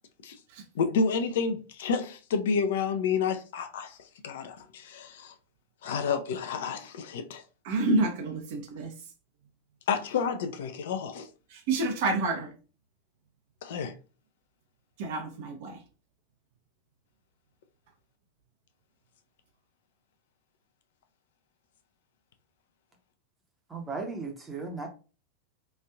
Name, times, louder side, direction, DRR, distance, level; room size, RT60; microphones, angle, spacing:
voice 1, 0.7-5.3 5.8-7.4 9.9-11.3 13.6-13.9, left 5 dB, 55° left, 0.5 m, -30 dB
voice 2, 7.6-8.9 11.5-12.5 15.0-15.8, right 2 dB, 50° right, 0.8 m, -29 dB
voice 3, 23.7-24.9, right 4 dB, 10° right, 0.8 m, -36 dB
3.1 x 2.5 x 2.4 m
figure-of-eight pair, 90°, 0 cm